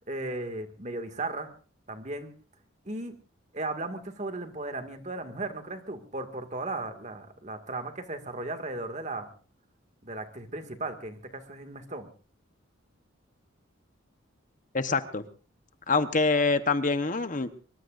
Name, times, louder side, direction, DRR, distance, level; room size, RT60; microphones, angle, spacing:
voice 1, 0.1-1.5 1.9-2.3 2.9-3.2 3.5-9.3 10.0-12.1, right 2 dB, 35° right, 7 dB, 2.1 m, -36 dB
voice 2, 14.7-15.2 15.9-17.5, left 3 dB, 40° left, 10 dB, 1.0 m, -25 dB
24.0 x 22.5 x 2.6 m, 0.36 s
head